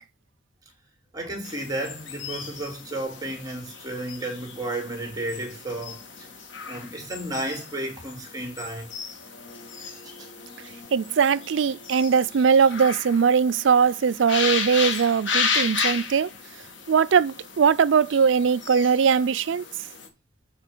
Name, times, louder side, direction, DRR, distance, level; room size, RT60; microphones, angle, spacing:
voice 1, 1.1-6.3 6.7-8.9 9.9-10.3, right 1 dB, 20° right, 3.3 m, -33 dB
sound 1, 1.4-20.1, left 5 dB, 80° left, 2.1 m, -34 dB
voice 2, 10.9-16.3 16.9-19.6, right 6 dB, 80° right, 0.4 m, -20 dB
8.3 x 5.1 x 6.0 m
head